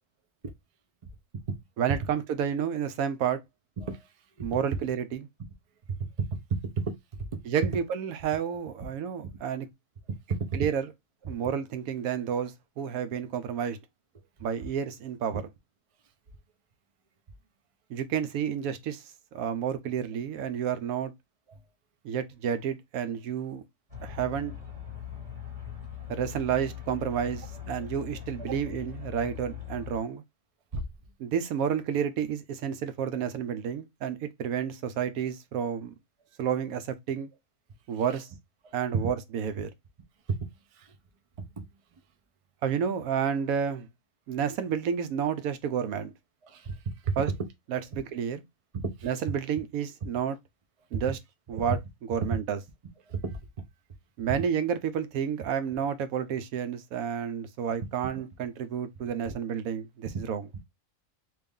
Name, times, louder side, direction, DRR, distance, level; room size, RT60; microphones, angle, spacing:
voice 1, 1.8-3.4 4.4-5.3 7.5-9.7 10.5-10.9 11.3-13.8 14.4-15.4 17.9-19.0 19.3-21.1 22.0-23.6 24.0-24.5 26.1-30.2 31.2-35.9 36.4-37.3 37.9-38.3 38.7-39.7 42.6-43.9 44.3-46.1 47.2-47.3 47.7-48.4 49.0-50.4 50.9-51.2 51.5-51.8 52.1-52.6 54.2-60.4, right 8 dB, 85° right, 1.0 m, -30 dB
voice 2, 3.8-4.1 4.4-4.5 5.9-6.9 7.3-7.4 10.1-10.6 11.2-11.4 21.5-21.6 28.5-28.6 30.7-30.8 38.6-39.0 40.3-41.0 41.6-41.7 46.4-47.2 48.7-49.1 51.5-51.7 52.2-52.3 53.1-53.4 60.1-60.2, right 4 dB, 60° right, 0.3 m, -33 dB
sound 1, 23.9-30.0, left 9 dB, 30° right, 1.1 m, -41 dB
3.2 x 2.5 x 3.5 m
omnidirectional pair, 1.5 m